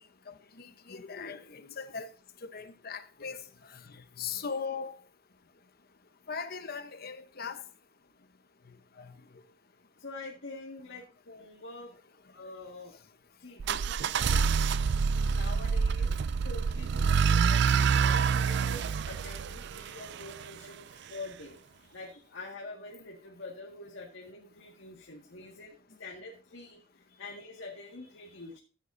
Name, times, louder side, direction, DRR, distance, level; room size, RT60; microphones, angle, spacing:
voice 1, 0.3-2.1 2.4-3.4 3.7-5.0 6.3-7.6 9.0-9.1 17.7-17.8, left 5 dB, 50° left, 1.0 m, -39 dB
voice 2, 10.0-11.9 12.3-12.9 13.4-14.4 15.3-16.1 16.4-21.5 21.9-28.6, left 2 dB, 70° left, 1.9 m, -46 dB
sound 1, 13.6-20.5, right 6 dB, 60° right, 0.4 m, -27 dB
14.5 x 8.2 x 2.6 m
head